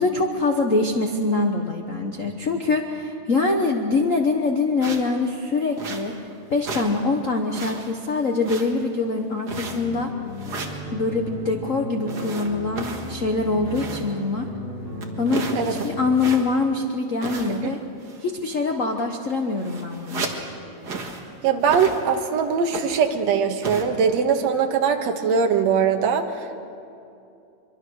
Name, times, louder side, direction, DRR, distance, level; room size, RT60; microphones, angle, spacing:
voice 1, 0.0-6.1 6.5-10.1 10.9-14.5 15.2-17.8 18.2-20.3, left 3 dB, 65° left, 3 dB, 0.7 m, -24 dB
sound 1, 4.8-5.2 5.8-6.3 6.6-7.0 7.3-8.0 8.4-9.0 9.4-10.0 10.4-10.8 12.1-14.2 14.5-14.6 15.0-16.7 17.2-17.8 18.0-18.3 19.0-19.1 19.3-20.5 20.8-21.3 21.6-22.3 22.7-23.1 23.6-23.8, right 4 dB, 40° right, 2.0 m, -34 dB
sound 2, 9.5-16.1, left 1 dB, 20° left, 3.7 m, -35 dB
voice 2, 21.4-26.6, right 6 dB, 70° right, 4 dB, 2.5 m, -21 dB
24.0 x 23.5 x 6.4 m, 2.6 s
omnidirectional pair, 3.3 m